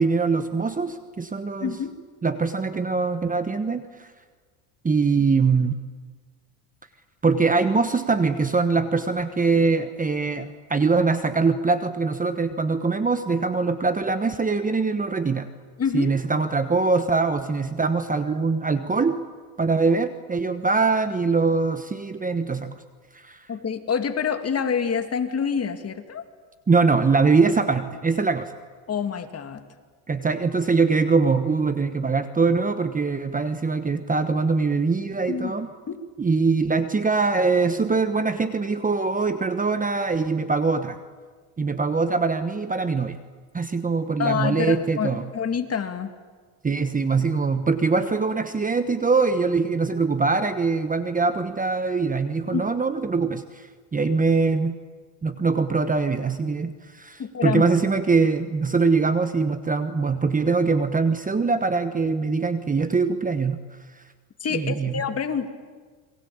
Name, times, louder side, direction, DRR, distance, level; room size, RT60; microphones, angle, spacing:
voice 1, 0.0-1.8 2.2-4.1 4.8-5.8 7.2-15.5 15.9-19.2 19.6-22.7 23.1-23.5 26.7-28.5 30.1-35.7 36.2-41.0 41.6-43.2 43.5-45.3 46.6-54.8 55.2-63.6 64.5-64.9, right 4 dB, 15° right, 10 dB, 1.2 m, -23 dB
voice 2, 1.6-2.0 15.8-16.1 23.5-26.2 28.9-29.6 35.3-35.5 35.9-36.0 44.2-46.1 52.5-52.7 57.2-57.6 64.4-65.5, left 6 dB, 30° left, 7 dB, 2.4 m, -27 dB
29.5 x 22.5 x 8.7 m, 1.5 s
supercardioid pair, 110°, 49 cm